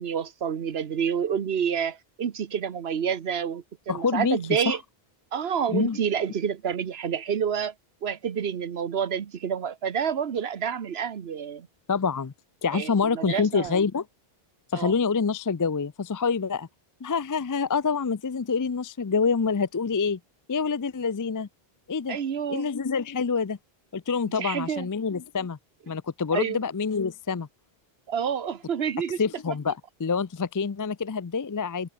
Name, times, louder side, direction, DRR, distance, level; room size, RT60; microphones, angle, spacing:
voice 1, 0.0-4.8 5.3-7.7 8.0-11.7 12.7-13.8 14.7-15.0 22.1-22.7 24.2-24.9 26.3-26.6 28.1-29.2, right 7 dB, 75° right, 1.3 m, -28 dB
voice 2, 3.9-4.4 4.7-4.8 5.7-6.0 11.9-12.3 12.6-14.0 14.7-16.7 17.0-20.2 20.5-21.5 21.9-22.2 22.5-23.6 23.9-25.6 25.9-27.5 29.2-31.9, left 5 dB, 35° left, 0.3 m, -26 dB
omnidirectional pair, 1.0 m